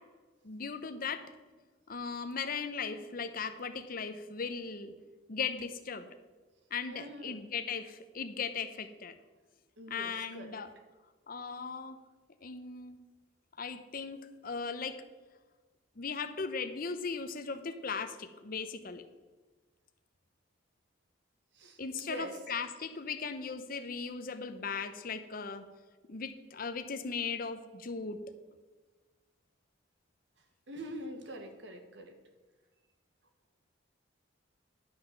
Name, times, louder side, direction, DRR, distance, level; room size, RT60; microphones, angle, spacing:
voice 1, 0.4-1.2 1.9-4.9 5.3-6.1 6.7-9.1 9.9-10.7 11.3-12.0 12.4-13.0 13.6-15.0 16.0-19.0 21.8-25.6 26.1-28.2, left 5 dB, 50° left, 9 dB, 0.8 m, -38 dB
voice 2, 6.9-7.4 9.8-10.6 21.5-22.4 30.7-32.1, right 1 dB, 65° right, 5 dB, 1.5 m, -44 dB
11.5 x 6.1 x 6.6 m, 1.3 s
head